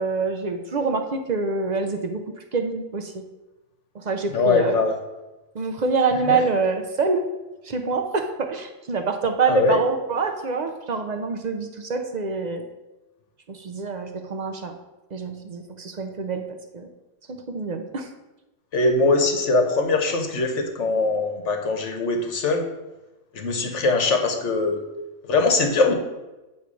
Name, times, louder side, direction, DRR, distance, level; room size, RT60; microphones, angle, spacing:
voice 1, 0.0-2.2 2.5-3.2 3.9-4.9 5.5-7.2 7.6-12.6 13.5-14.7 15.1-16.9 17.3-18.1, right 4 dB, 50° right, 5 dB, 0.5 m, -26 dB
voice 2, 4.3-4.9 6.3-6.4 9.5-9.8 18.7-22.6 23.3-24.8 25.2-25.9, left 3 dB, 65° left, 4 dB, 1.2 m, -21 dB
8.2 x 3.2 x 6.1 m, 1.1 s
omnidirectional pair, 1.4 m